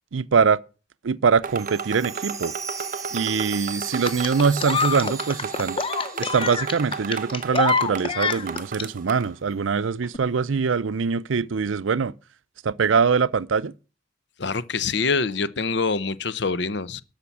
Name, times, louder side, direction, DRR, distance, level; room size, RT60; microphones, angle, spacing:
voice 1, 0.1-0.6 1.0-2.5 3.1-5.8 6.2-12.1 12.6-13.7, right 5 dB, 85° right, 0.5 m, -23 dB
sound 1, 1.4-9.3, right 6 dB, 45° right, 0.7 m, -34 dB
Chime, 1.5-7.5 7.8-7.9 8.5-8.6, right 5 dB, 20° right, 1.3 m, -38 dB
sound 2, 4.0-8.8 10.0-10.2, left 5 dB, 30° left, 0.7 m, -26 dB
voice 2, 14.4-17.0, left 4 dB, 60° left, 0.7 m, -25 dB
13.0 x 5.8 x 8.3 m
head